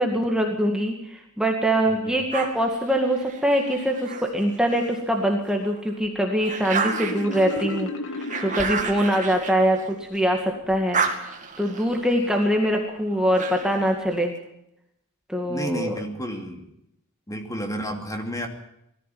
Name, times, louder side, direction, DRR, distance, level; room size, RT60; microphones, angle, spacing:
voice 1, 0.0-14.4 15.3-16.0, equal, 5° right, 2 dB, 2.1 m, -23 dB
voice 2, 1.9-2.2 15.5-16.7 17.3-18.5, equal, 15° left, 4 dB, 2.6 m, -31 dB
sound 1, 2.3-5.0 5.5-10.3 10.6-13.9, right 5 dB, 35° right, 2.5 m, -32 dB
Marimba xylophone, 6.8-9.6, left 2 dB, 60° left, 1.8 m, -34 dB
19.5 x 14.5 x 9.4 m, 0.81 s
head